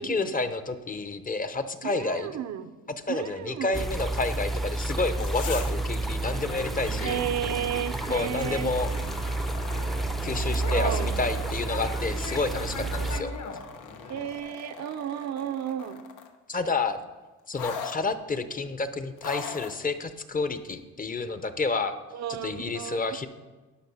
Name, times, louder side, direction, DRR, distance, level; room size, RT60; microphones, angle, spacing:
voice 1, 0.0-2.3 3.1-7.2 8.1-8.9 10.2-13.3 16.5-17.0 17.5-22.0 22.3-23.3, left 3 dB, 30° left, 10 dB, 0.8 m, -30 dB
voice 2, 1.8-2.7 3.1-3.8 7.0-8.7 10.7-11.2 14.1-16.0 22.1-23.2, right 10 dB, 60° right, 11 dB, 0.7 m, -33 dB
sound 1, 3.7-13.2, right 2 dB, ahead, 0.6 m, -30 dB
sound 2, 5.2-5.8 6.2-6.3 8.6-11.7 12.7-16.4 17.5-18.0 19.2-19.8 20.7-20.8, left 7 dB, 85° left, 1.1 m, -40 dB
Conversation, 6.0-14.4, left 3 dB, 65° left, 1.7 m, -40 dB
11.5 x 5.8 x 5.6 m, 1.2 s
cardioid pair, 90°, 30 cm